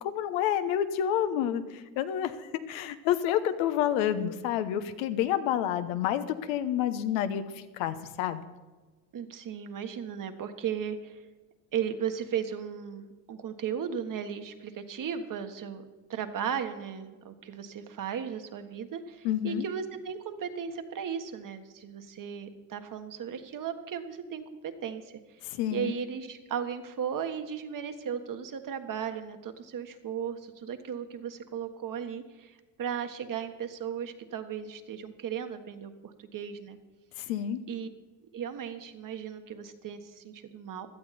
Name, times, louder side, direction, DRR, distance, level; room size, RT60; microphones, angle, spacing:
voice 1, 0.0-8.4 19.2-19.6 25.5-25.9 37.2-37.6, left 10 dB, 80° left, 10 dB, 1.1 m, -29 dB
voice 2, 9.1-11.2 11.7-15.8 16.1-25.2 25.7-36.8 37.2-37.3 37.7-37.9 38.3-40.9, right 8 dB, 45° right, 7 dB, 1.6 m, -36 dB
16.5 x 12.0 x 4.3 m, 1.3 s
supercardioid pair, 80°, 43 cm